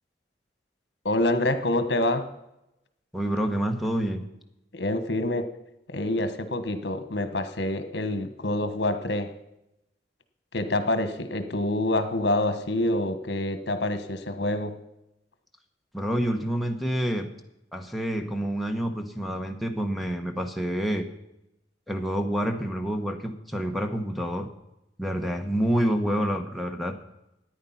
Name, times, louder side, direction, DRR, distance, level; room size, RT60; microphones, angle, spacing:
voice 1, 1.0-2.3 4.7-5.5 5.9-9.3 10.5-14.8, left 1 dB, 70° left, 10 dB, 1.3 m, -26 dB
voice 2, 3.1-4.3 15.9-17.3 17.7-21.1 21.9-24.5 25.0-26.9, equal, ahead, 6 dB, 1.2 m, -28 dB
14.0 x 9.6 x 5.7 m, 0.89 s
head